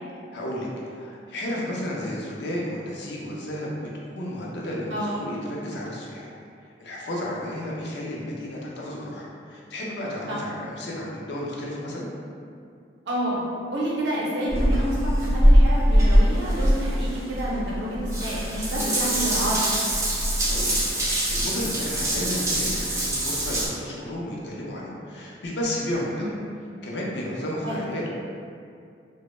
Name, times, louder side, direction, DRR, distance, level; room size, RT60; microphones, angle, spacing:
voice 1, 0.3-3.9 4.1-6.3 6.6-12.1 20.0-26.4 26.8-28.1, left 1 dB, 65° left, -4 dB, 0.5 m, -32 dB
voice 2, 4.9-5.2 10.3-10.4 13.1-13.4 13.7-19.6 26.1-26.3 27.6-27.8, right 1 dB, 75° right, -5 dB, 0.6 m, -29 dB
Water tap faucet / Bathtub (filling or washing) / Drip, 14.5-23.7, equal, 15° right, 0.3 m, -22 dB
2.0 x 2.0 x 3.0 m, 2.4 s
head